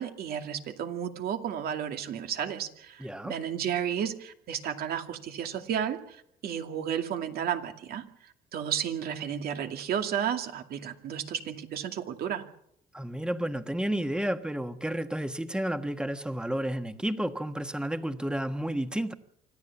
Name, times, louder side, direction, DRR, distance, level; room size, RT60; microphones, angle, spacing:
voice 1, 0.0-8.1 8.5-12.4, right 9 dB, 65° right, 5 dB, 2.4 m, -32 dB
voice 2, 3.0-3.3 12.9-19.1, right 1 dB, 5° right, 8 dB, 1.5 m, -31 dB
25.5 x 14.5 x 7.2 m, 0.73 s
cardioid pair, 110°, 17 cm